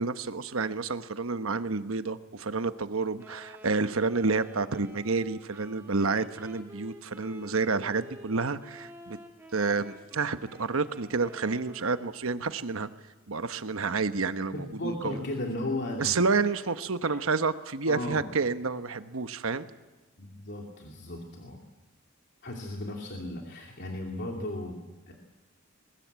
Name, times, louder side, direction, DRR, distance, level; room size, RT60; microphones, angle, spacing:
voice 1, 0.0-9.2 9.5-12.9 13.3-15.2 16.0-19.7, right 4 dB, 70° right, 11 dB, 1.1 m, -29 dB
Wind instrument woodwind instrument, 3.2-12.2, equal, 10° right, 3.6 m, -51 dB
voice 2, 14.5-16.1 17.0-17.2 17.9-18.3 20.2-21.6 22.4-25.1, left 1 dB, 55° left, 0 dB, 2.7 m, -35 dB
21.5 x 20.5 x 8.2 m, 1.1 s
head